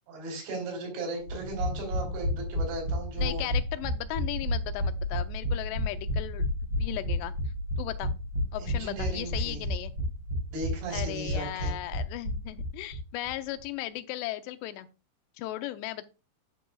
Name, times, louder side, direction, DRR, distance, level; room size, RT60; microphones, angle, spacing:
voice 1, 0.1-3.4 8.6-9.6 10.5-11.7, right 2 dB, 85° right, 1 dB, 6.1 m, -36 dB
sound 1, 1.3-13.0 13.3-13.4 13.6-13.7, left 1 dB, 35° right, 4.6 m, -31 dB
voice 2, 3.2-6.5 6.8-7.3 7.8-8.1 8.5-9.9 10.9-14.9 15.4-16.1, left 14 dB, 85° left, 11 dB, 2.8 m, -36 dB
14.0 x 6.2 x 2.3 m, 0.32 s
omnidirectional pair, 4.9 m